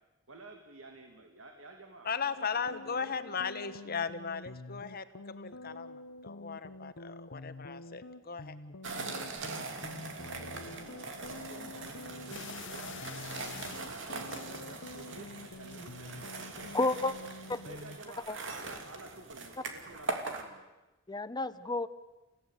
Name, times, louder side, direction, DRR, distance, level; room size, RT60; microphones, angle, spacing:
voice 1, 0.3-3.4 10.2-16.8 17.6-20.6, right 2 dB, 80° right, 3 dB, 2.4 m, -52 dB
voice 2, 2.0-8.5, left 6 dB, 50° left, 11 dB, 1.3 m, -37 dB
sound 1, 2.4-18.0, left 2 dB, 90° left, 1.0 m, -48 dB
sound 2, 8.8-20.4, right 3 dB, 65° right, 2.7 m, -41 dB
sound 3, 12.3-15.2 15.5-16.0 16.7-16.8 17.1-17.2, left 10 dB, 65° left, 0.7 m, -49 dB
voice 3, 16.7-17.1 17.5-17.6 18.3-18.4 21.1-21.9, left 2 dB, 20° left, 13 dB, 0.8 m, -31 dB
29.5 x 16.5 x 8.2 m, 1.1 s
head